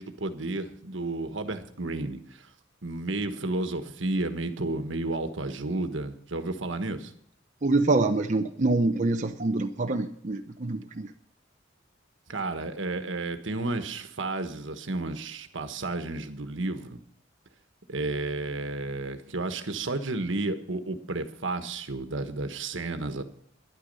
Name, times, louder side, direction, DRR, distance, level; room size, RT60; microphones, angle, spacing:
voice 1, 0.0-2.5 2.8-7.1 12.3-17.0 17.9-23.2, right 2 dB, 75° right, 8 dB, 1.4 m, -32 dB
voice 2, 7.6-11.1, right 2 dB, 40° right, 4 dB, 0.7 m, -25 dB
12.5 x 11.0 x 5.5 m, 0.66 s
head